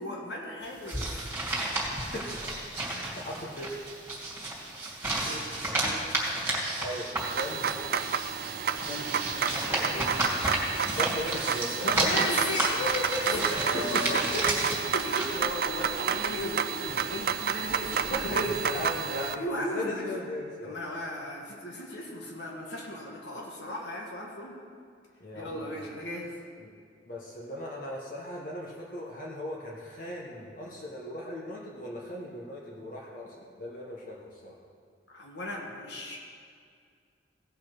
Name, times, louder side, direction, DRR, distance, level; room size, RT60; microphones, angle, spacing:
voice 1, 0.0-1.4 5.3-6.0 8.9-10.2 11.0-11.1 11.8-14.4 14.9-18.4 19.3-20.1 20.6-24.6 25.3-26.3 35.1-36.2, left 1 dB, 65° left, -1 dB, 1.6 m, -36 dB
sound 1, 0.6-16.5 16.8-19.0, right 2 dB, 15° right, 2.5 m, -33 dB
voice 2, 1.9-3.7 6.8-7.8 8.9-9.0 10.9-12.5 13.3-14.8 18.1-19.4 19.7-20.8 25.2-25.8 26.6-26.7 27.0-34.5, left 1 dB, 50° left, -3 dB, 1.3 m, -37 dB
sound 2, 7.2-19.3, right 7 dB, 55° right, 0.4 m, -30 dB
16.5 x 5.8 x 6.1 m, 2.2 s
head